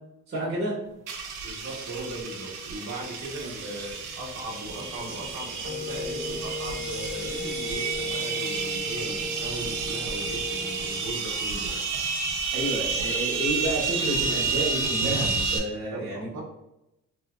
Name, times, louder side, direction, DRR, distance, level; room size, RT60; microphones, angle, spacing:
voice 1, 0.3-0.8 12.5-16.4, right 1 dB, 40° right, -6 dB, 1.0 m, -30 dB
sound 1, 1.1-15.6, right 5 dB, 90° right, 0.6 m, -30 dB
voice 2, 1.4-11.8 15.9-16.4, right 1 dB, 65° right, 0 dB, 1.0 m, -38 dB
Wind instrument woodwind instrument, 5.6-11.3, left 3 dB, 20° left, 0.8 m, -37 dB
3.3 x 2.8 x 2.3 m, 0.89 s
cardioid pair, 90°, 30 cm